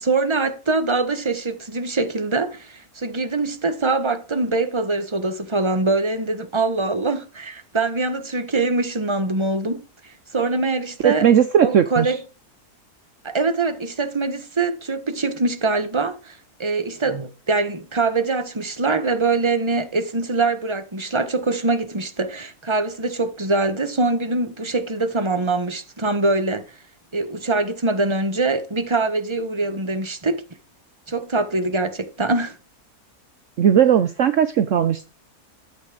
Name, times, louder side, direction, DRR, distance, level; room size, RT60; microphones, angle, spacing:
voice 1, 0.0-11.3 11.6-12.2 13.2-26.6 27.1-30.4 31.1-32.6, right 3 dB, 20° right, 1.5 m, -23 dB
voice 2, 11.0-12.1 33.6-35.1, right 9 dB, 60° right, 1.1 m, -17 dB
13.0 x 8.4 x 5.0 m
omnidirectional pair, 1.6 m